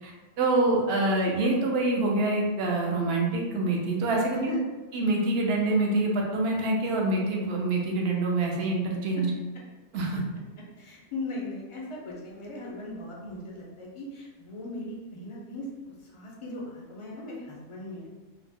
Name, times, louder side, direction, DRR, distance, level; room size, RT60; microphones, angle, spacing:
voice 1, 0.4-4.6 4.9-9.3 9.9-10.2, right 2 dB, 60° right, -1 dB, 0.8 m, -26 dB
voice 2, 10.8-18.1, left 2 dB, 35° left, -4 dB, 0.5 m, -39 dB
2.8 x 2.0 x 3.5 m, 1.2 s
omnidirectional pair, 1.2 m